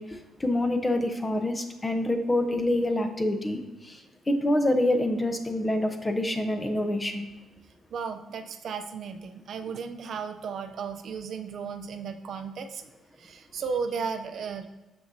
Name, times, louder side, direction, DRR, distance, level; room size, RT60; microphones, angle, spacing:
voice 1, 0.0-7.3, left 1 dB, 20° left, 6 dB, 0.7 m, -27 dB
voice 2, 7.9-12.8 13.2-14.7, right 6 dB, 65° right, 6 dB, 0.5 m, -34 dB
6.2 x 5.7 x 2.7 m, 1.1 s
cardioid pair, 90°, 0 cm